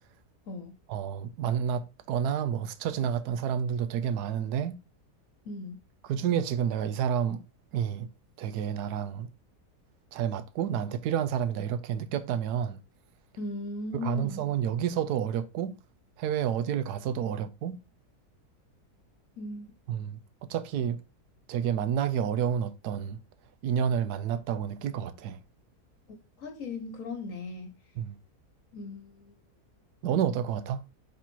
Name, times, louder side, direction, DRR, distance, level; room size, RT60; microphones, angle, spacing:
voice 1, 0.9-4.8 6.0-7.4 7.7-8.1 8.4-9.3 10.1-12.8 13.9-15.8 16.2-17.8 19.9-21.0 21.5-23.2 23.6-25.4 28.0-28.2 30.0-30.8, right 8 dB, 80° right, 1.2 m, -30 dB
voice 2, 5.4-5.8 13.4-14.4 19.4-19.7 26.4-27.7 28.7-29.3, left 3 dB, 60° left, 1.2 m, -37 dB
5.9 x 4.2 x 4.5 m
omnidirectional pair, 1.7 m